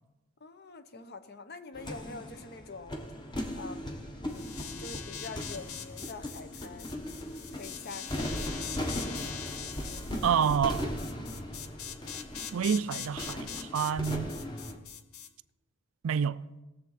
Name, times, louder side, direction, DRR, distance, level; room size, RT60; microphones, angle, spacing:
voice 1, 0.4-3.0 3.5-6.9 7.5-8.7 14.7-14.8, left 3 dB, 50° left, 0.8 m, -46 dB
sound 1, 1.7-14.8, equal, 20° left, 1.1 m, -38 dB
sound 2, 4.3-15.3, left 9 dB, 80° left, 0.8 m, -42 dB
voice 2, 10.2-10.9 12.5-14.3 16.0-16.4, right 7 dB, 70° right, 0.4 m, -28 dB
18.5 x 7.2 x 4.1 m
head